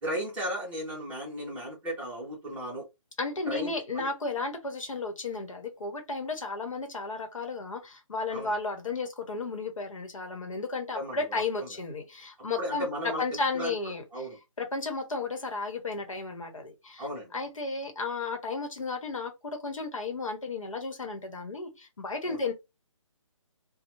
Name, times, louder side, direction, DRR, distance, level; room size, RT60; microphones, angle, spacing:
voice 1, 0.0-2.8 3.5-4.1 8.3-8.5 10.9-11.7 12.6-13.2 13.5-13.7 14.1-14.4 17.0-17.3 22.2-22.4, equal, 5° right, 0.9 m, -35 dB
voice 2, 3.2-14.0 14.6-22.5, left 3 dB, 75° left, 1.1 m, -33 dB
2.7 x 2.2 x 2.9 m
figure-of-eight pair, 155°, 17 cm